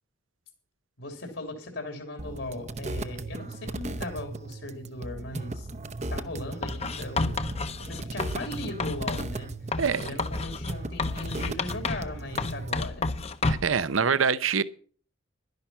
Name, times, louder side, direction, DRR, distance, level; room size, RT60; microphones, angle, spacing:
voice 1, 1.0-5.7 6.1-7.4 7.9-9.5 10.0-13.1, left 1 dB, 75° left, 3.1 m, -38 dB
sound 1, 2.2-12.8, right 2 dB, 35° right, 0.7 m, -37 dB
Writing, 6.6-9.3 9.7-12.1 12.4-13.8, left 3 dB, 30° left, 0.8 m, -31 dB
voice 2, 9.8-10.1 13.4-14.6, right 6 dB, 85° right, 0.7 m, -25 dB
11.5 x 10.5 x 5.6 m
head